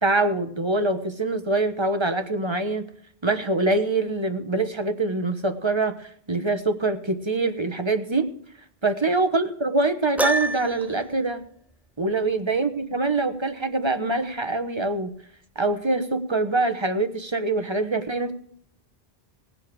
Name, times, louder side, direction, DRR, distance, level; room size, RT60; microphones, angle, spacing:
voice 1, 0.0-2.9 3.2-8.3 8.8-11.4 12.0-15.1 15.5-18.3, right 2 dB, 25° right, 8 dB, 1.2 m, -24 dB
Piano, 10.2-11.0, equal, ahead, 0.4 m, -25 dB
19.5 x 7.6 x 4.7 m, 0.64 s
omnidirectional pair, 1.1 m